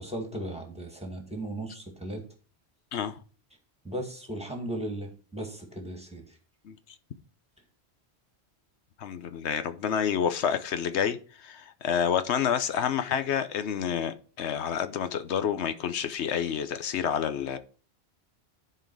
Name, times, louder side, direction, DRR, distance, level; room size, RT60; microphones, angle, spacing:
voice 1, 0.0-2.2 3.8-6.4, right 1 dB, 5° right, 2.0 m, -36 dB
voice 2, 9.0-17.6, left 8 dB, 90° left, 1.1 m, -29 dB
11.0 x 4.7 x 4.7 m
omnidirectional pair, 1.1 m